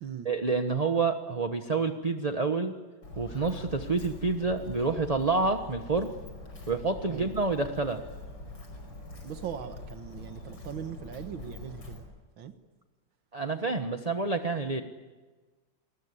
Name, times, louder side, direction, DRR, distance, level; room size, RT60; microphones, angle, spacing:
voice 1, 0.2-2.7 3.2-6.1 6.7-8.0 13.3-14.8, right 3 dB, 25° right, 7 dB, 1.1 m, -28 dB
Walk footsteps, 3.0-12.0, left 2 dB, 80° left, 6.0 m, -44 dB
voice 2, 9.2-12.1 12.4-12.5, right 8 dB, 90° right, 8 dB, 2.2 m, -40 dB
28.0 x 21.0 x 9.8 m, 1.3 s
omnidirectional pair, 2.1 m